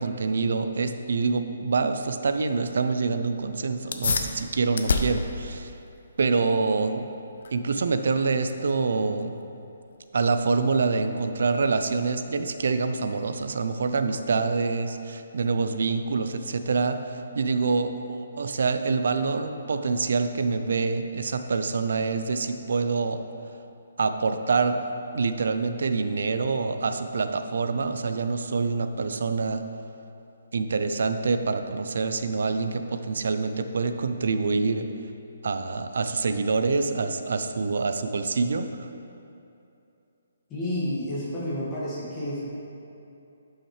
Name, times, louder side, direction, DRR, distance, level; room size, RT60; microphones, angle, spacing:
voice 1, 0.0-5.7 6.2-7.1 7.5-9.3 10.1-23.2 24.0-29.6 30.5-34.9 35.4-38.9, right 4 dB, 65° right, 8 dB, 0.5 m, -26 dB
sound 1, 3.8-13.8, left 4 dB, 60° left, 0.5 m, -34 dB
voice 2, 40.5-42.5, left 1 dB, 15° left, -8 dB, 1.6 m, -30 dB
10.0 x 5.6 x 3.2 m, 2.7 s
hypercardioid pair, 165°, 0 cm